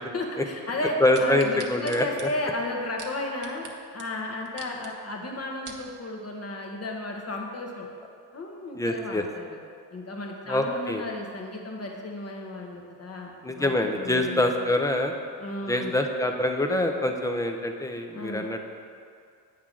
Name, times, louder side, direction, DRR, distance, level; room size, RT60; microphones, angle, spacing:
voice 1, 0.1-3.7 3.9-7.9 8.3-9.6 9.9-14.7 15.4-15.9 18.1-18.4, left 2 dB, 35° left, 1 dB, 1.4 m, -34 dB
voice 2, 1.0-2.0 8.8-9.2 10.5-11.0 13.4-15.1 15.7-18.7, left 1 dB, 10° left, 4 dB, 0.7 m, -25 dB
sound 1, 1.1-3.7 4.0-4.1 4.5-4.9 5.4-5.9 6.5-6.6, right 5 dB, 40° right, 1.1 m, -43 dB
8.6 x 3.7 x 6.1 m, 2.3 s
cardioid pair, 70°, 44 cm